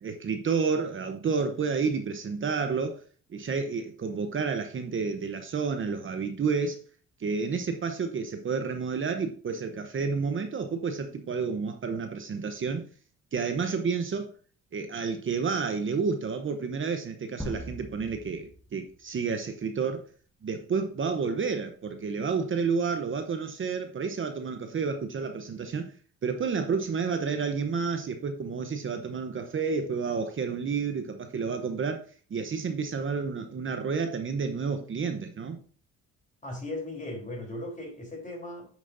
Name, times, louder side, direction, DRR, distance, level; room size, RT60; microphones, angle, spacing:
voice 1, 0.0-3.0 3.3-6.8 7.2-12.8 13.3-14.3 14.7-20.0 20.4-25.9 26.2-32.0 32.3-35.6, right 5 dB, 40° right, 0.9 m, -30 dB
sound 1, 17.4-19.4, equal, ahead, 1.7 m, -41 dB
voice 2, 36.4-38.7, left 1 dB, 25° left, 3.7 m, -37 dB
8.8 x 6.2 x 2.7 m
cardioid pair, 90°, 30 cm